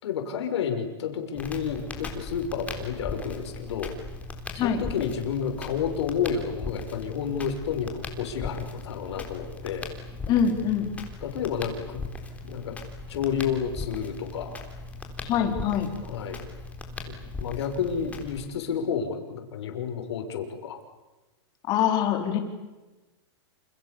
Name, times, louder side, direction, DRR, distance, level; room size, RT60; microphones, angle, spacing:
voice 1, 0.0-3.9 4.5-9.9 11.2-12.0 12.4-12.8 13.1-14.6 16.0-16.5 17.4-20.8, left 7 dB, 75° left, 4 dB, 6.3 m, -30 dB
Crackle, 1.3-18.5, left 3 dB, 10° left, 3.9 m, -38 dB
voice 2, 10.3-10.9 15.2-15.9 21.7-22.4, left 8 dB, 30° left, 5 dB, 4.6 m, -24 dB
29.0 x 28.5 x 7.1 m, 1.1 s
supercardioid pair, 160°, 14 cm